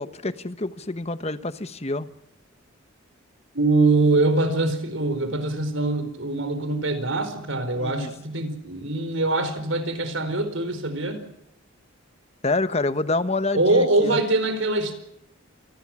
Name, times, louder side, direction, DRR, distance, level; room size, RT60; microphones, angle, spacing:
voice 1, 0.0-2.1 7.8-8.1 12.4-14.2, left 2 dB, 30° left, 13 dB, 1.1 m, -27 dB
voice 2, 3.5-11.2 13.5-14.9, right 2 dB, 65° right, 10 dB, 4.6 m, -23 dB
28.0 x 19.5 x 6.2 m, 0.78 s
head